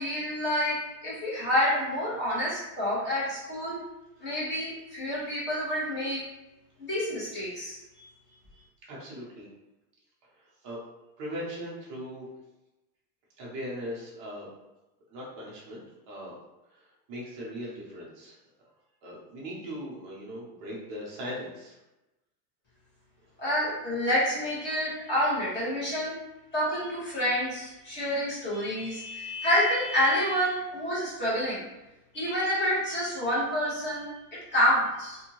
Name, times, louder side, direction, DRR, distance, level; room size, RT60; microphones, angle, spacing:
voice 1, 0.0-3.8 4.2-6.3 6.8-8.1 23.4-26.1 26.5-31.6 32.1-35.2, equal, 25° left, -8 dB, 1.2 m, -28 dB
voice 2, 8.8-9.5 10.6-10.8 11.2-12.3 13.4-14.5 15.1-16.3 16.7-16.8 17.1-18.4 19.0-21.8, equal, 25° right, -5 dB, 0.3 m, -39 dB
2.6 x 2.6 x 2.8 m, 1.0 s
supercardioid pair, 155°, 47 cm